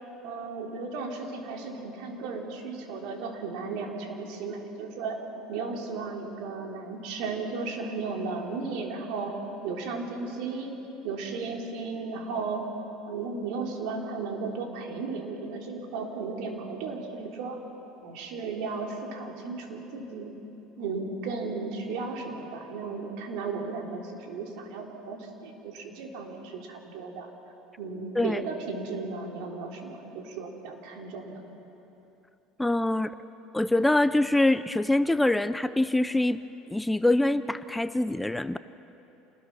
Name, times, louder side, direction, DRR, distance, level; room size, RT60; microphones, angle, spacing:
voice 1, 0.2-5.2 5.5-9.3 9.6-10.8 11.0-12.7 13.0-17.6 18.0-20.3 20.8-27.3 27.8-31.4, right 4 dB, 70° right, 1 dB, 3.4 m, -35 dB
voice 2, 32.6-33.1 33.5-36.4 36.7-38.6, left 1 dB, 5° left, 13 dB, 0.6 m, -24 dB
27.5 x 20.0 x 6.1 m, 3.0 s
supercardioid pair, 95°, 0 cm